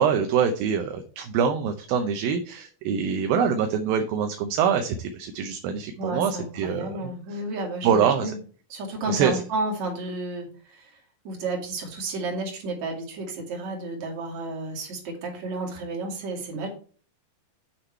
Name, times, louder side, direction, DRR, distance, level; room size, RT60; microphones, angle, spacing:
voice 1, 0.0-6.9 7.3-7.4 7.8-8.3 9.1-9.4, right 7 dB, 75° right, 6 dB, 2.3 m, -24 dB
voice 2, 6.0-8.3 8.7-11.0 11.2-16.7, right 2 dB, 50° right, 0 dB, 3.4 m, -32 dB
8.1 x 6.3 x 4.4 m, 0.42 s
omnidirectional pair, 4.7 m